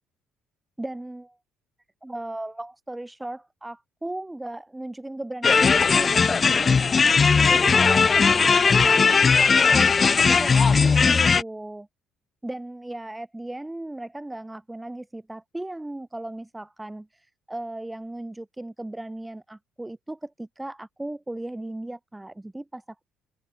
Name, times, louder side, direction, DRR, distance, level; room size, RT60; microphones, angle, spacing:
voice 1, 0.8-1.4 2.0-6.9 7.3-11.9 12.4-23.0, right 1 dB, 10° right, 1.8 m, -36 dB
sound 1, 5.4-11.4, left 5 dB, 35° left, 0.6 m, -18 dB
hypercardioid pair, 50°, 0 cm